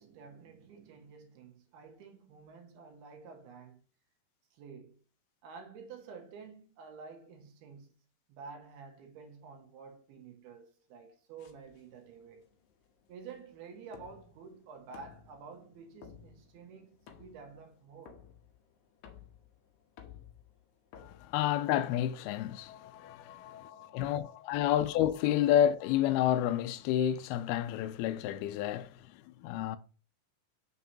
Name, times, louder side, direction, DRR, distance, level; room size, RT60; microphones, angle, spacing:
voice 1, 0.0-3.8 4.5-5.0 5.4-7.9 8.3-12.5 13.1-18.2 23.3-24.7, right 5 dB, 85° right, 3.2 m, -50 dB
sound 1, 11.4-22.1, left 8 dB, 70° left, 2.1 m, -57 dB
voice 2, 21.0-29.8, left 11 dB, 90° left, 2.5 m, -30 dB
7.4 x 6.2 x 2.8 m
omnidirectional pair, 4.4 m